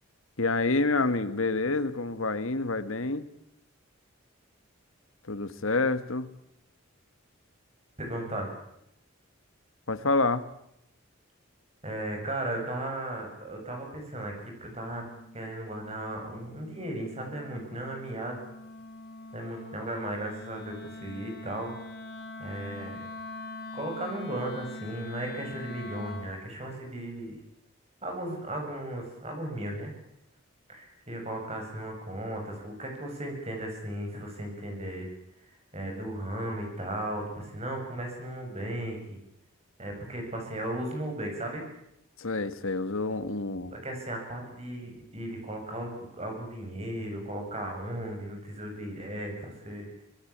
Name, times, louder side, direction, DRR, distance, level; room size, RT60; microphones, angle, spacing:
voice 1, 0.4-3.3 5.3-6.3 9.9-10.4 42.2-43.7, left 3 dB, 75° left, 13 dB, 1.6 m, -28 dB
voice 2, 8.0-8.5 11.8-15.1 15.3-18.4 19.3-21.7 22.4-23.0 23.7-27.4 28.0-29.9 30.7-35.1 35.7-39.2 39.8-41.6 43.7-49.9, right 1 dB, 30° right, 2 dB, 8.0 m, -36 dB
Wind instrument woodwind instrument, 14.9-26.4, left 2 dB, 45° left, 6.3 m, -43 dB
25.0 x 20.0 x 8.8 m, 0.79 s
head